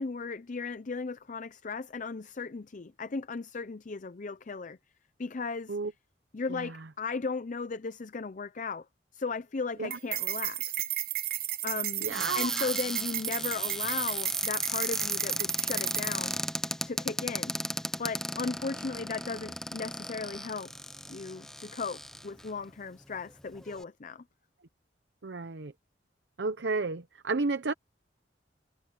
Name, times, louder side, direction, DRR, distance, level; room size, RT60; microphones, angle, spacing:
voice 1, 0.0-4.8 5.2-5.7 6.3-8.9 9.1-10.9 11.6-12.1 12.3-16.4 16.8-17.6 18.0-20.7 21.1-24.2, left 4 dB, 45° left, 0.6 m, -36 dB
voice 2, 6.5-6.8 9.8-10.0 12.0-12.7 25.2-25.7 26.4-27.7, right 3 dB, 70° right, 0.8 m, -32 dB
sound 1, 9.9-16.3, right 14 dB, 55° right, 1.3 m, -33 dB
Cupboard open or close, 12.1-22.5 23.1-23.2 23.5-23.8, left 1 dB, 5° left, 0.7 m, -35 dB
head